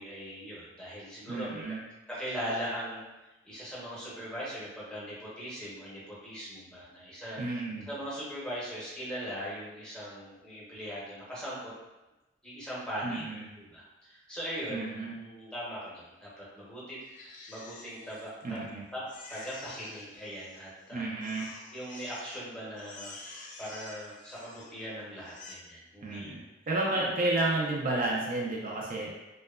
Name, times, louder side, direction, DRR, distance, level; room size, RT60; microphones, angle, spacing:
voice 1, 0.0-1.6 2.1-3.0 3.4-7.4 7.9-11.7 12.4-13.2 13.6-17.0 17.5-18.7 18.9-19.0 19.3-21.1 21.7-23.1 23.6-26.3, equal, 5° left, -8 dB, 0.8 m, -40 dB
voice 2, 1.3-1.8 7.4-7.9 13.0-13.4 14.7-15.1 18.4-18.8 20.9-21.5 26.0-29.1, right 2 dB, 45° right, -3 dB, 0.4 m, -31 dB
Crying sobbing, 17.0-18.7 19.1-20.9 21.2-22.4 22.7-24.8 25.2-25.5, left 3 dB, 45° left, 0.3 m, -49 dB
2.7 x 2.1 x 2.3 m, 1.0 s
head